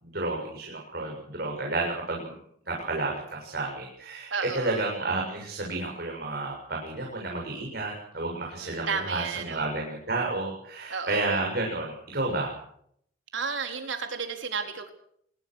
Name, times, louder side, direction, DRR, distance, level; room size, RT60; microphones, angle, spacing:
voice 1, 0.0-2.3 2.7-12.5, right 2 dB, 50° right, 0 dB, 7.2 m, -31 dB
voice 2, 4.3-4.8 8.6-9.7 10.9-11.4 13.3-14.9, right 5 dB, 75° right, 5 dB, 4.1 m, -33 dB
27.0 x 21.5 x 6.5 m, 0.69 s
head